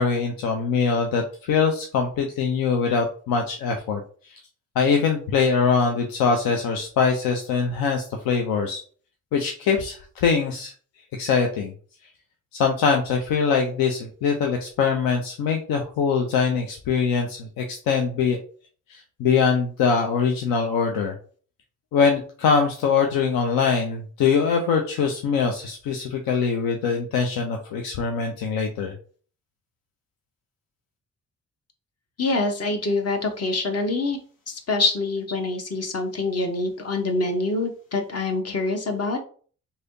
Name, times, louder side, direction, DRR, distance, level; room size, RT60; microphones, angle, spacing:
voice 1, 0.0-4.0 4.8-8.8 9.3-10.7 11.2-11.7 12.5-18.4 18.9-21.1 21.9-28.9, left 5 dB, 70° left, 3 dB, 0.6 m, -23 dB
voice 2, 32.2-34.2 34.5-39.2, left 3 dB, 40° left, 4 dB, 1.0 m, -25 dB
3.2 x 2.7 x 2.7 m, 0.43 s
hypercardioid pair, 40°, 37 cm